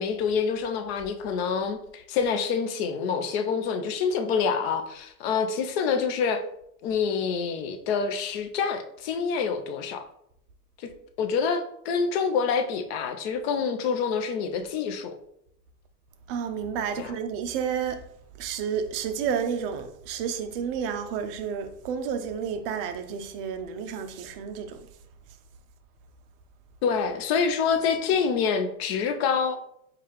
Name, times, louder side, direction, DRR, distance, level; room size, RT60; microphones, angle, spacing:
voice 1, 0.0-6.4 6.8-10.1 10.8-10.9 11.2-15.1 17.0-17.1 26.8-29.6, left 6 dB, 45° left, 0.5 m, -27 dB
voice 2, 16.3-18.0 18.4-24.9, right 7 dB, 40° right, 0.4 m, -31 dB
4.6 x 2.4 x 2.9 m
hypercardioid pair, 125°, 46 cm